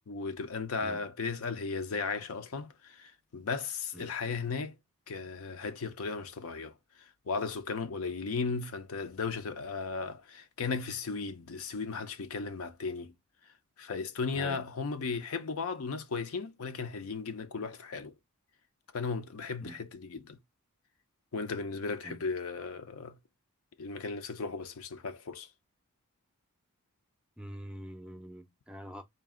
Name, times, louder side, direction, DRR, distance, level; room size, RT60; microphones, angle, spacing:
voice 1, 0.1-4.8 5.1-13.1 13.8-18.1 18.9-20.4 21.3-23.2 23.8-25.5, left 4 dB, 65° left, 0.5 m, -36 dB
voice 2, 27.4-29.0, equal, 5° right, 0.5 m, -44 dB
3.9 x 2.4 x 3.6 m
head